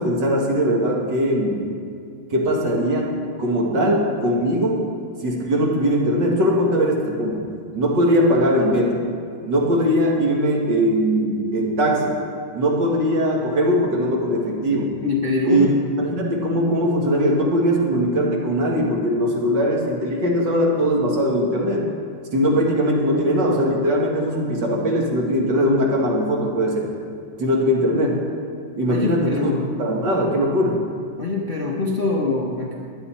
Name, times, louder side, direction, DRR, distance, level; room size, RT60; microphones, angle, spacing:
voice 1, 0.0-1.6 2.3-4.8 5.2-7.5 7.7-9.0 9.5-12.2 12.5-15.0 15.5-15.7 16.0-21.9 22.3-26.9 27.4-28.2 28.8-29.5 29.8-30.8, equal, 60° right, -1 dB, 2.3 m, -20 dB
voice 2, 15.0-15.7 28.9-29.7 31.2-32.8, left 3 dB, 35° left, -3 dB, 0.9 m, -24 dB
16.0 x 10.5 x 4.3 m, 2.3 s
omnidirectional pair, 2.3 m